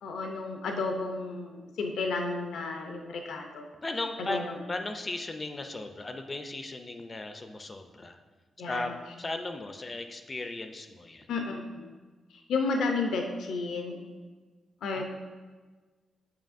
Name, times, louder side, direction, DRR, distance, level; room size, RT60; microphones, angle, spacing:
voice 1, 0.0-3.7 4.2-4.6 8.6-8.9 11.3-11.9 12.3-14.0 14.8-15.1, left 3 dB, 85° left, 3 dB, 0.5 m, -32 dB
voice 2, 3.8-4.4 4.7-8.2 8.7-8.9 9.2-11.3 14.9-15.1, left 2 dB, 20° left, 6 dB, 0.3 m, -36 dB
7.4 x 5.4 x 2.5 m, 1.4 s
wide cardioid pair, 160°, 0 cm